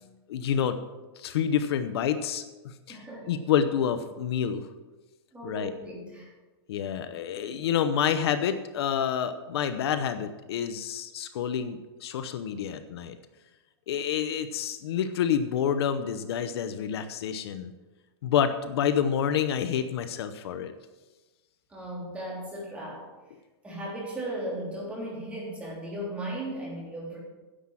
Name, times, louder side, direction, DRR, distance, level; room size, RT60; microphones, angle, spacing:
voice 1, 0.3-0.8 1.2-3.0 3.3-4.6 5.4-5.7 6.7-13.2 13.9-17.7 18.2-20.7, left 8 dB, 70° left, 10 dB, 0.9 m, -28 dB
voice 2, 2.9-3.3 5.3-6.3 21.7-23.1 23.6-27.2, right 1 dB, 10° right, -3 dB, 3.3 m, -36 dB
10.0 x 7.3 x 7.6 m, 1.2 s
supercardioid pair, 155°, 14 cm